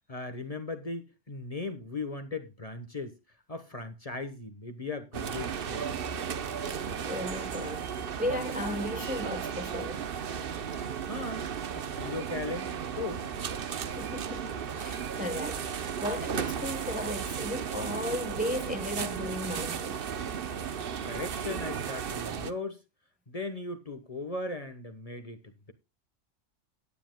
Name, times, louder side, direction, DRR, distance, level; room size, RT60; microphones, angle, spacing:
voice 1, 0.1-3.2 3.5-6.0 11.1-13.2 21.0-22.8 23.3-25.7, left 3 dB, 30° left, 1.2 m, -38 dB
sound 1, 5.1-22.5, right 7 dB, 50° right, 0.9 m, -35 dB
voice 2, 6.8-10.0 14.0-20.0, left 1 dB, 5° right, 0.9 m, -35 dB
17.0 x 10.0 x 2.2 m
omnidirectional pair, 1.3 m